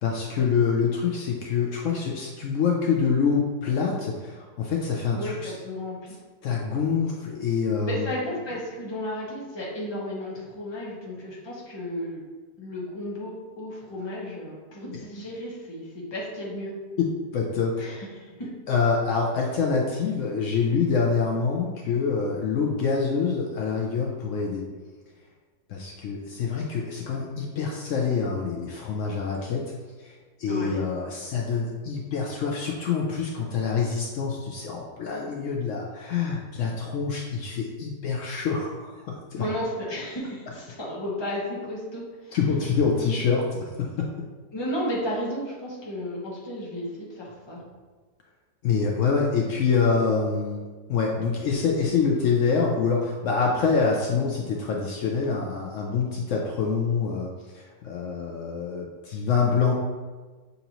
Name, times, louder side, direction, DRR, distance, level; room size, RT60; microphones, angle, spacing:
voice 1, 0.0-5.5 6.4-8.1 17.3-17.8 18.7-24.6 25.7-29.6 30.0-39.4 42.3-44.1 48.6-59.7, left 5 dB, 90° left, -1 dB, 0.6 m, -26 dB
voice 2, 5.1-6.0 7.8-12.2 12.6-16.7 17.8-18.3 30.5-30.8 39.3-42.4 43.0-43.1 44.5-47.6, left 1 dB, 20° left, -5 dB, 0.7 m, -33 dB
6.7 x 2.6 x 2.9 m, 1.4 s
omnidirectional pair, 1.9 m